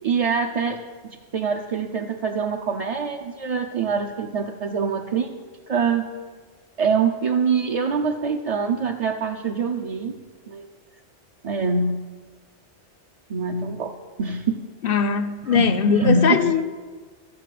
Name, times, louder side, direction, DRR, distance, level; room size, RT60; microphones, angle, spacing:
voice 1, 0.0-5.4 5.7-6.1 6.8-10.1 10.5-10.7 11.4-12.0 13.3-14.6 15.5-16.6, right 5 dB, 45° right, 0.5 m, -24 dB
voice 2, 14.8-16.6, left 6 dB, 60° left, 0.7 m, -20 dB
14.0 x 5.8 x 7.5 m
omnidirectional pair, 1.2 m